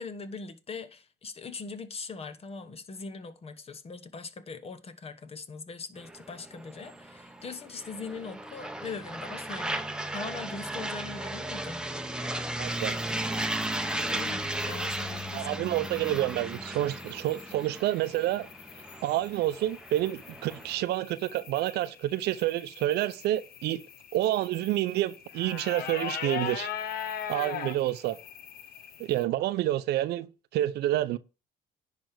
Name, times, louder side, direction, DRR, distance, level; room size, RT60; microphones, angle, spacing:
voice 1, 0.0-9.8 10.1-11.9 14.1-15.7 16.7-16.8, left 4 dB, 35° left, 1.1 m, -41 dB
sound 1, 6.0-20.8, right 1 dB, 5° right, 1.0 m, -36 dB
voice 2, 12.6-12.9 15.3-18.5 19.0-23.8 24.1-26.7 27.3-28.2 29.0-31.2, right 14 dB, 75° right, 0.7 m, -28 dB
sound 2, 12.7-29.2, left 9 dB, 60° left, 0.9 m, -42 dB
10.5 x 3.5 x 6.5 m
cardioid pair, 95°, 17 cm